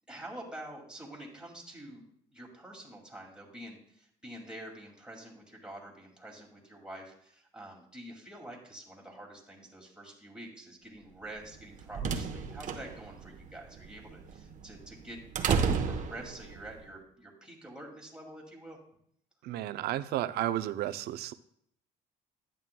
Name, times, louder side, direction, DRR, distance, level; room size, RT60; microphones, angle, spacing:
voice 1, 0.1-2.0 2.3-18.8, right 1 dB, 5° right, -2 dB, 2.3 m, -47 dB
sound 1, 11.4-16.7, right 6 dB, 45° right, 0.9 m, -33 dB
voice 2, 19.4-21.3, right 13 dB, 70° right, 13 dB, 0.5 m, -32 dB
11.0 x 9.0 x 2.2 m, 0.70 s
cardioid pair, 110°, 17 cm